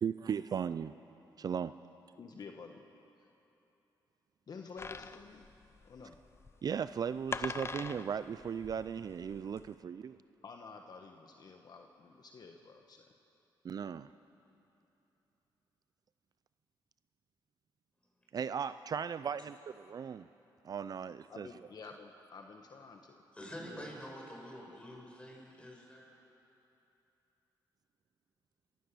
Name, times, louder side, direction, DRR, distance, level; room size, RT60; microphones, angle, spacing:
voice 1, 0.0-0.9 1.4-1.7 6.6-10.2 13.6-14.1 18.3-19.5 19.9-20.3 20.6-21.5, right 7 dB, 50° right, 14 dB, 0.4 m, -37 dB
voice 2, 2.2-2.8 3.2-3.3 4.5-5.5 5.8-6.2 10.4-13.0 21.3-23.2, left 4 dB, 55° left, 4 dB, 1.2 m, -50 dB
sound 1, 4.8-9.7, left 4 dB, 30° left, 0.7 m, -43 dB
voice 3, 23.3-26.1, left 1 dB, 15° left, -2 dB, 6.1 m, -47 dB
26.5 x 15.5 x 6.8 m, 2.9 s
cardioid pair, 85°, 8 cm